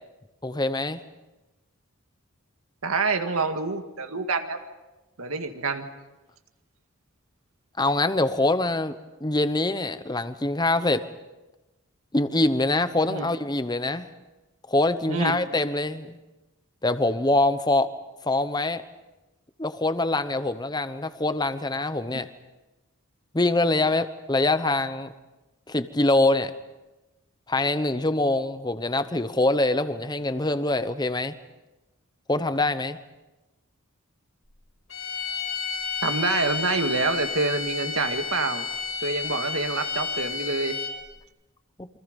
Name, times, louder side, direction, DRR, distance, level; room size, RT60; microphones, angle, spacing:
voice 1, 0.4-1.0 7.8-8.9 9.2-11.1 12.1-14.1 14.7-16.2 16.8-17.9 18.2-18.8 19.6-22.3 23.3-25.1 25.7-26.5 27.5-31.3 32.3-33.0 41.8-41.9, left 2 dB, 20° left, 12 dB, 0.9 m, -24 dB
voice 2, 2.8-4.6 5.2-5.9 13.1-13.3 15.1-15.3 36.0-38.7 39.0-40.8, right 3 dB, 80° right, 7 dB, 1.9 m, -27 dB
sound 1, 34.9-41.1, left 5 dB, 70° left, 5.8 m, -31 dB
28.0 x 24.5 x 5.3 m, 1.1 s
head